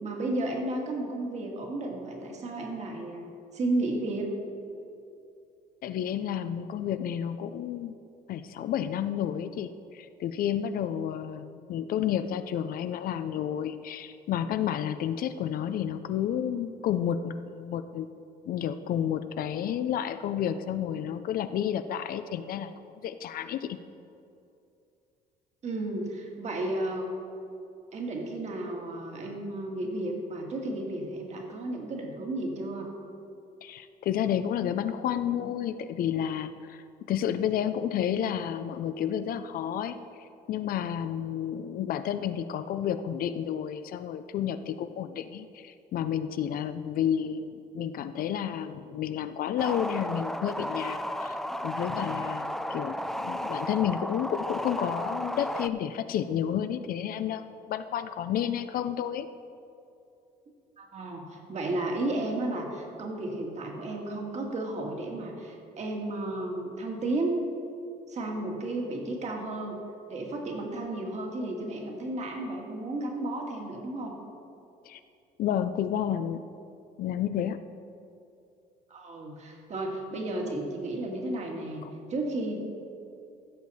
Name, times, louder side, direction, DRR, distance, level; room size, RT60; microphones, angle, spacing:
voice 1, 0.0-3.3 3.5-4.3 25.6-27.1 27.9-32.9 60.8-67.4 68.1-69.8 70.1-74.1 78.9-81.8 82.1-82.6, right 2 dB, 40° right, 1 dB, 1.9 m, -33 dB
voice 2, 5.8-7.9 8.3-18.1 18.5-22.7 23.0-23.8 33.6-40.0 40.5-51.4 51.6-59.3 74.9-75.0 75.4-76.4 77.0-77.6, left 9 dB, 60° left, 11 dB, 0.5 m, -31 dB
sound 1, 49.6-55.7, equal, ahead, 0.4 m, -33 dB
15.5 x 6.4 x 4.1 m, 2.6 s
cardioid pair, 110°, 17 cm